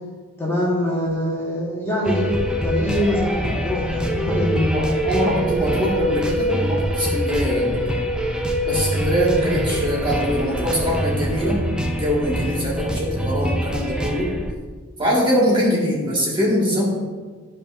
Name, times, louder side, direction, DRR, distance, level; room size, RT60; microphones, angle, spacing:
voice 1, 0.4-5.0 5.3-5.6, equal, 10° left, -6 dB, 1.3 m, -24 dB
sound 1, 2.0-14.5, equal, 5° right, 0.5 m, -24 dB
voice 2, 4.5-7.9 8.6-11.6 12.0-14.3 15.0-16.9, equal, 25° right, -5 dB, 1.5 m, -22 dB
12.0 x 5.1 x 2.4 m, 1.5 s
head